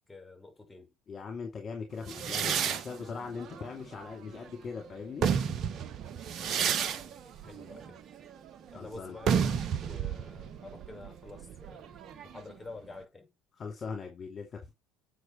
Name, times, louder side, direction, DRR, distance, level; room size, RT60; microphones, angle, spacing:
voice 1, 0.1-0.9 6.2-8.0 8.7-11.9 12.2-13.3, left 3 dB, 15° left, 5.7 m, -48 dB
voice 2, 1.1-5.3 8.7-9.2 13.6-14.7, left 5 dB, 40° left, 2.6 m, -40 dB
sound 1, 2.1-4.5 5.0-12.5, right 7 dB, 50° right, 1.2 m, -32 dB
8.0 x 6.2 x 4.3 m
hypercardioid pair, 60°, 0 cm